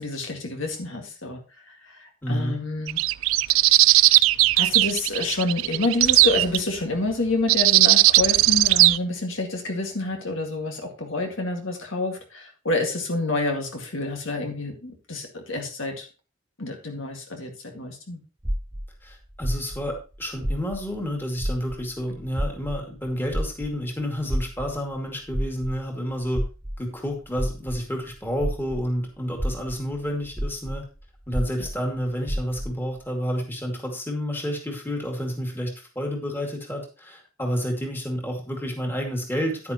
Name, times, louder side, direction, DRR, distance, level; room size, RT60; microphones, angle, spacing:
voice 1, 0.0-1.4 1.7-3.0 4.6-16.1 16.6-18.2 31.6-31.7, left 2 dB, 65° left, 2 dB, 2.0 m, -28 dB
voice 2, 2.2-2.6 19.0-26.4 26.8-30.8 31.3-39.7, equal, 10° left, 1 dB, 2.3 m, -30 dB
sound 1, 2.9-6.6 7.5-9.0, right 18 dB, 75° right, 0.3 m, -18 dB
sound 2, 18.4-21.1 21.4-28.9 29.3-32.8, equal, 10° right, 0.5 m, -31 dB
10.0 x 9.5 x 3.0 m, 0.34 s
head